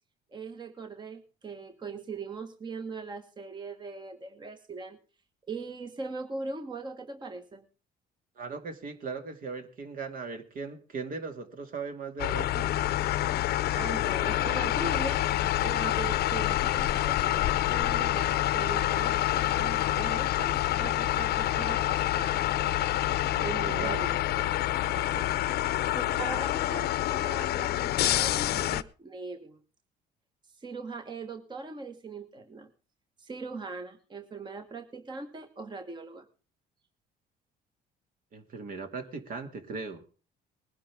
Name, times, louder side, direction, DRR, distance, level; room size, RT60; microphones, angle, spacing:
voice 1, 0.3-5.0 5.5-7.6 13.7-22.5 23.4-24.4 24.9-25.7 25.9-29.6 30.5-32.7 33.2-36.2, right 4 dB, 25° right, 7 dB, 1.4 m, -40 dB
voice 2, 8.4-12.8 23.3-24.1 38.3-40.0, right 4 dB, 55° right, 7 dB, 2.4 m, -38 dB
sound 1, 12.2-28.8, left 14 dB, 70° left, 0.8 m, -27 dB
20.0 x 11.5 x 3.6 m, 0.35 s
cardioid pair, 110°, 17 cm